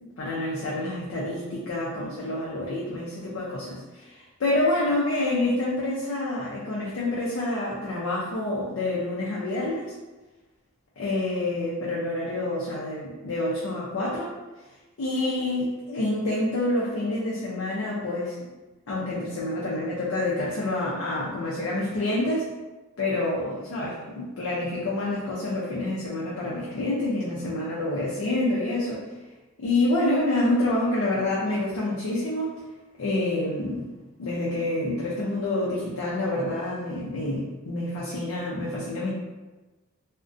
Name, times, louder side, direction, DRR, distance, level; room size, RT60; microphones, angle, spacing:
voice 1, 0.0-9.9 11.0-14.3 15.0-18.4 18.9-22.5 23.0-29.0 29.6-32.6 33.0-33.9 34.2-39.1, left 2 dB, 70° left, -5 dB, 0.5 m, -27 dB
2.4 x 2.1 x 2.5 m, 1.2 s
head